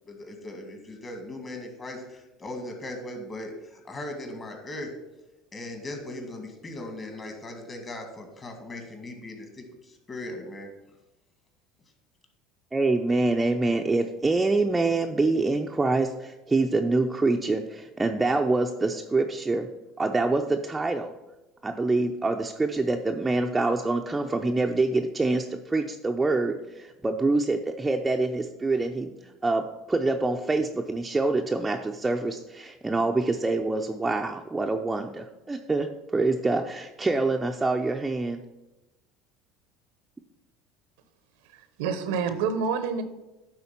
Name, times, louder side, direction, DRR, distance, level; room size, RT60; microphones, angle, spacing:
voice 1, 0.1-4.9 5.5-10.7, left 1 dB, 30° left, 4 dB, 2.0 m, -38 dB
voice 2, 12.7-19.7 20.0-21.1 21.6-29.1 29.4-38.4, right 3 dB, 15° right, 3 dB, 0.5 m, -26 dB
voice 3, 41.5-43.0, right 6 dB, 80° right, 10 dB, 0.8 m, -28 dB
9.6 x 3.8 x 5.8 m, 1.0 s
supercardioid pair, 95°, 0 cm